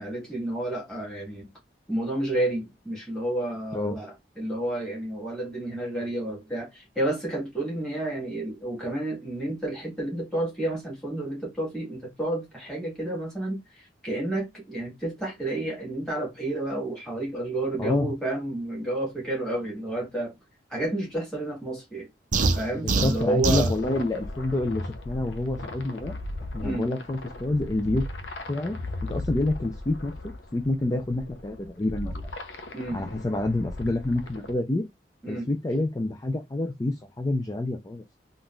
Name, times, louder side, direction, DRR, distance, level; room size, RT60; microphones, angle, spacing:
voice 1, 0.0-1.5 1.9-20.3 20.7-22.1 22.6-23.7 26.6-26.9 32.7-33.0 35.2-35.5, right 1 dB, 5° left, 1.7 m, -30 dB
voice 2, 17.8-18.1 22.8-26.2 26.5-28.0 28.5-28.8 29.0-32.3 32.9-34.8 35.3-38.2, left 2 dB, 20° left, 0.4 m, -28 dB
sound 1, 22.3-23.8, right 3 dB, 45° right, 0.5 m, -24 dB
sound 2, 23.2-34.5, left 2 dB, 85° left, 0.6 m, -37 dB
3.7 x 2.5 x 2.2 m
head